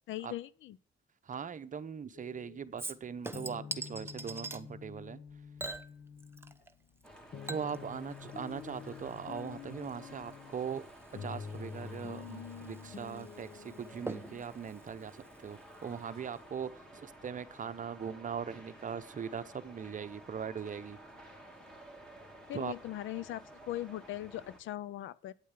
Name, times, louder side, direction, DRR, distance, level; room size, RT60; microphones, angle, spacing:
voice 1, 0.1-0.8 22.5-25.3, left 14 dB, 75° left, 0.6 m, -40 dB
voice 2, 1.2-5.2 7.5-10.9 11.2-21.0 22.5-22.7, right 7 dB, 40° right, 0.9 m, -40 dB
sound 1, 2.1-14.4, left 6 dB, 55° left, 1.3 m, -48 dB
Chink clink / Liquid, 2.8-4.6 5.6-6.7 7.0-16.0 16.4-16.5, right 2 dB, 10° right, 0.9 m, -46 dB
sound 2, 7.0-24.6, right 1 dB, 5° left, 2.9 m, -53 dB
9.1 x 8.4 x 7.4 m
cardioid pair, 90°, 20 cm